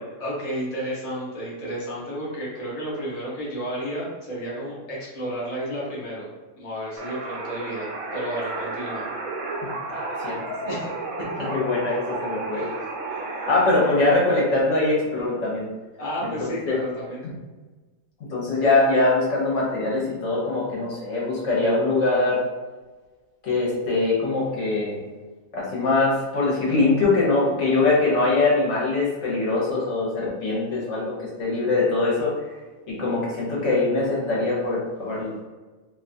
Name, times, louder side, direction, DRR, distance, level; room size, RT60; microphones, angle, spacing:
voice 1, 0.2-6.3 6.6-9.1 10.7-10.9 11.2-11.5 12.5-12.8 13.1-13.5 16.0-17.2, equal, 35° left, -6 dB, 0.6 m, -32 dB
sound 1, 7.0-14.2, right 2 dB, 85° right, 1.0 m, -32 dB
voice 2, 9.9-10.4 11.4-12.6 13.5-15.7 16.7-16.8 18.3-22.4 23.4-25.0 25.5-32.3 32.9-35.4, left 3 dB, 60° left, -6 dB, 1.1 m, -22 dB
2.7 x 2.3 x 2.6 m, 1.3 s
omnidirectional pair, 1.4 m